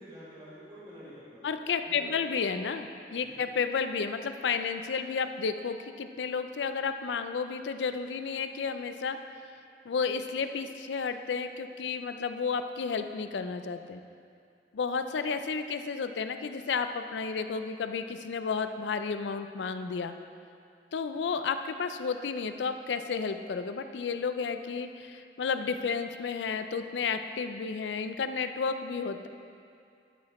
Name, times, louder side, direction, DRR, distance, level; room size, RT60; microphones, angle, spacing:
voice 1, 0.0-1.5 1.8-2.3 3.2-3.5, equal, 30° right, -10 dB, 2.2 m, -48 dB
voice 2, 1.4-9.2 9.9-14.0 14.7-20.1 20.9-29.3, left 5 dB, 80° left, 9 dB, 0.4 m, -32 dB
12.0 x 4.9 x 4.2 m, 2.4 s
head